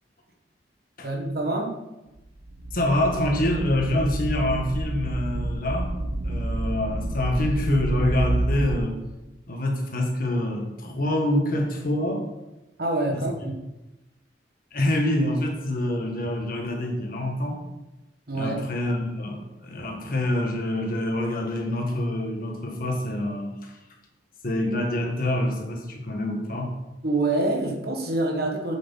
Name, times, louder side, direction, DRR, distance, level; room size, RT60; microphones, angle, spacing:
voice 1, 1.0-1.7 12.8-13.5 18.3-18.6 27.0-28.8, right 2 dB, 55° right, 1 dB, 1.5 m, -26 dB
sound 1, 2.2-2.3 2.5-8.8, right 1 dB, 90° right, 0.9 m, -29 dB
voice 2, 2.7-5.9 6.2-9.0 9.5-12.2 13.1-13.2 14.7-17.6 18.4-23.7 24.4-26.7, left 1 dB, 50° left, 1 dB, 1.5 m, -26 dB
7.9 x 7.6 x 4.1 m, 0.98 s
head